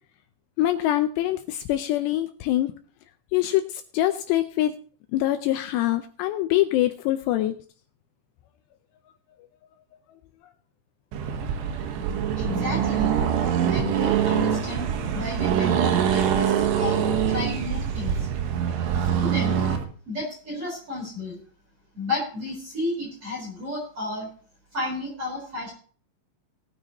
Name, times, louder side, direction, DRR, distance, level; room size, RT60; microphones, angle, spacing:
voice 1, 0.6-2.7 3.3-3.6 3.9-4.7 5.1-7.6, left 14 dB, 85° left, 8 dB, 2.4 m, -24 dB
Accelerating revving vroom, 11.1-19.8, right 8 dB, 70° right, 3.2 m, -24 dB
voice 2, 12.4-13.1 13.6-18.3 19.2-19.6 20.1-21.4 21.9-24.3 24.7-25.7, left 2 dB, 30° right, -2 dB, 4.6 m, -32 dB
19.5 x 9.2 x 3.0 m, 0.43 s
omnidirectional pair, 5.6 m